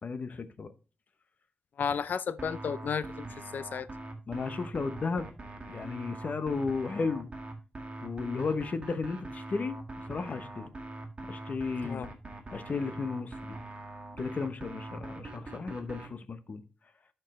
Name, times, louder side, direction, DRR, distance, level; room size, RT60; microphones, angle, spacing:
voice 1, 0.0-0.7 4.3-5.3 5.6-7.3 8.0-9.8 10.1-10.7 11.2-12.1 12.5-13.6 14.2-16.6, left 4 dB, 50° left, 0.8 m, -34 dB
voice 2, 1.8-3.9 11.8-12.1, left 6 dB, 70° left, 0.4 m, -33 dB
sound 1, 2.4-16.1, right 2 dB, 35° right, 1.7 m, -42 dB
12.0 x 4.5 x 3.1 m
cardioid pair, 80°, 3 cm